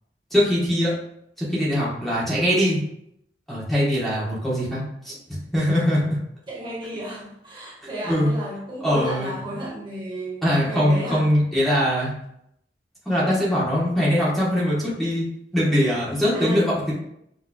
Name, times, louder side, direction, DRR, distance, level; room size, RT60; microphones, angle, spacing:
voice 1, 0.3-0.9 1.4-2.8 3.5-6.1 8.0-8.3 8.8-9.4 10.4-12.1 13.0-15.2 15.5-16.9, equal, ahead, -8 dB, 1.2 m, -22 dB
voice 2, 6.5-11.2 16.3-16.7, equal, 30° right, -7 dB, 1.2 m, -32 dB
6.1 x 3.2 x 2.3 m, 0.77 s
head